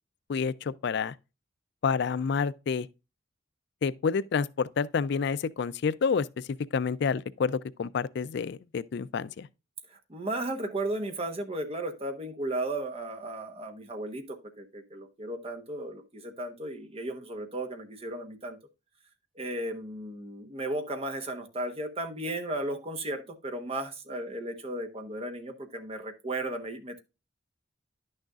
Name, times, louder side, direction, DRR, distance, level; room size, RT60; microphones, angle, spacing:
voice 1, 0.3-1.1 1.8-2.9 3.8-9.5, left 5 dB, 60° left, 0.4 m, -29 dB
voice 2, 9.9-18.6 19.4-27.0, right 1 dB, 30° right, 1.1 m, -35 dB
11.0 x 6.4 x 2.4 m
head